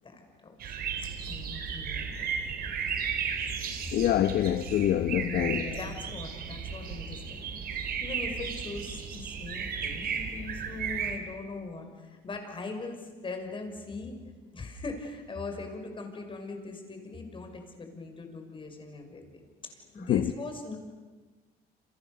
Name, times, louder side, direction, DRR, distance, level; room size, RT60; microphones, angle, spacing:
voice 1, 0.0-0.7 1.0-2.3 2.6-2.7 5.2-14.2 14.5-19.2 19.6-20.8, left 3 dB, 30° left, 6.0 m, -41 dB
sound 1, 0.6-11.2, right 6 dB, 65° right, 4.4 m, -34 dB
voice 2, 3.9-5.8 20.1-20.3, left 11 dB, 65° left, 1.0 m, -26 dB
29.5 x 27.0 x 6.9 m
cardioid pair, 110°, 17 cm